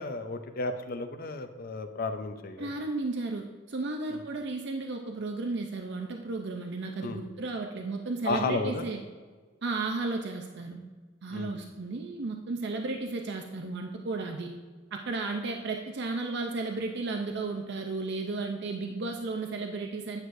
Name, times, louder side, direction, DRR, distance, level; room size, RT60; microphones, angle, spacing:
voice 1, 0.0-2.7 4.1-4.2 7.0-7.2 8.3-8.9 11.3-11.5, left 3 dB, 50° left, 8 dB, 0.5 m, -33 dB
voice 2, 2.6-9.0 9.6-10.8 11.2-14.6 14.9-20.2, right 3 dB, 60° right, 3 dB, 0.5 m, -34 dB
9.5 x 6.3 x 2.6 m, 1.4 s
head